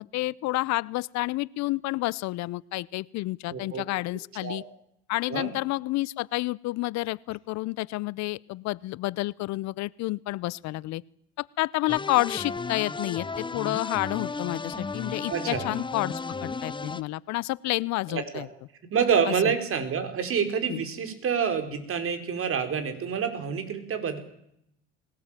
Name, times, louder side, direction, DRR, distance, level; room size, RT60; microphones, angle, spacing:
voice 1, 0.0-4.6 5.1-11.0 11.4-18.5 19.4-19.5 20.7-20.8, left 19 dB, 60° left, 23 dB, 0.8 m, -30 dB
voice 2, 3.5-3.8 4.4-4.6 5.3-5.5 15.3-15.7 18.1-18.4 18.9-24.2, right 7 dB, 45° right, 8 dB, 4.8 m, -27 dB
sound 1, 11.9-17.0, left 4 dB, 15° left, 1.0 m, -34 dB
20.5 x 18.5 x 9.1 m, 0.74 s
hypercardioid pair, 80°, 31 cm